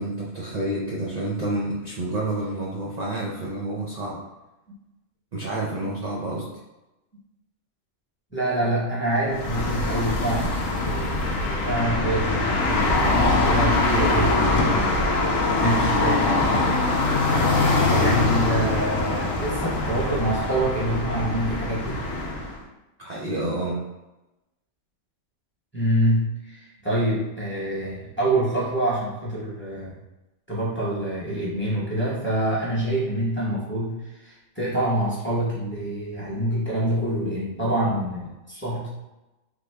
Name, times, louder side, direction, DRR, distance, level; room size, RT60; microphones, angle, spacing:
voice 1, 0.0-4.2 5.3-6.5 23.0-23.8, right 1 dB, 70° right, -5 dB, 0.4 m, -29 dB
voice 2, 8.3-15.0 15.6-16.5 17.2-22.0 25.7-29.9 30.5-38.9, right 1 dB, 10° left, -8 dB, 0.7 m, -26 dB
sound 1, 9.3-22.6, left 2 dB, 90° left, 1.0 m, -23 dB
3.4 x 2.1 x 3.2 m, 1.0 s
omnidirectional pair, 1.3 m